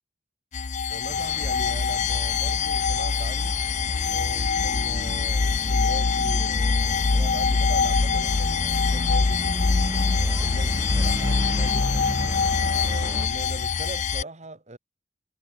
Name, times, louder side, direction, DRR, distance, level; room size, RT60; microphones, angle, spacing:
sound 1, 0.5-14.2, left 5 dB, 40° left, 0.5 m, -24 dB
voice 1, 0.9-3.6 4.1-10.0 10.4-12.1 12.8-14.8, right 2 dB, 40° right, 2.4 m, -41 dB
sound 2, 1.1-13.3, right 1 dB, 15° right, 0.7 m, -35 dB
head